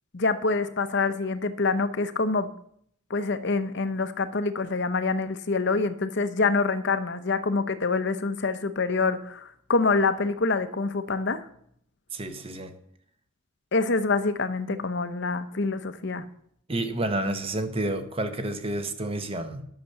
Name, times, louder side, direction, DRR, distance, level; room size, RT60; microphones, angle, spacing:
voice 1, 0.1-2.5 3.1-11.4 13.7-16.2, left 3 dB, 55° left, 12 dB, 0.8 m, -26 dB
voice 2, 12.1-12.7 16.7-19.6, right 1 dB, 25° right, 8 dB, 0.9 m, -30 dB
11.5 x 6.7 x 6.7 m, 0.68 s
head